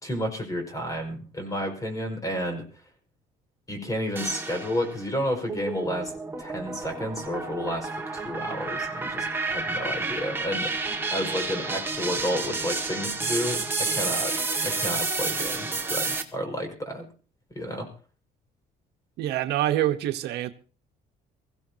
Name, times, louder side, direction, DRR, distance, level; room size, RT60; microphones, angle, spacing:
voice 1, 0.0-2.7 3.7-6.1 6.4-10.7 11.1-17.1 17.6-17.9, equal, 20° left, 5.3 m, -31 dB
sound 1, 4.2-5.0 5.5-16.2, right 3 dB, 15° right, 2.0 m, -30 dB
voice 2, 19.2-20.5, right 13 dB, 80° right, 1.1 m, -25 dB
24.0 x 15.5 x 2.8 m
cardioid pair, 110°, 17 cm